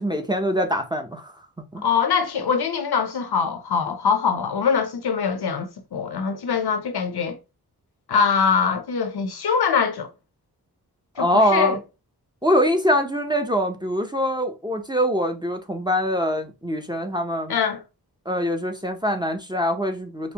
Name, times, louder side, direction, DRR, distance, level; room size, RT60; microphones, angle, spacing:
voice 1, 0.0-1.3 1.7-1.9 11.2-11.8 12.4-17.6 18.3-20.3, equal, 10° right, 0.6 m, -23 dB
voice 2, 1.8-7.4 8.1-10.1 11.2-11.8 17.5-17.8, left 6 dB, 75° left, 0.8 m, -23 dB
5.2 x 2.0 x 2.9 m
wide cardioid pair, 65°, 39 cm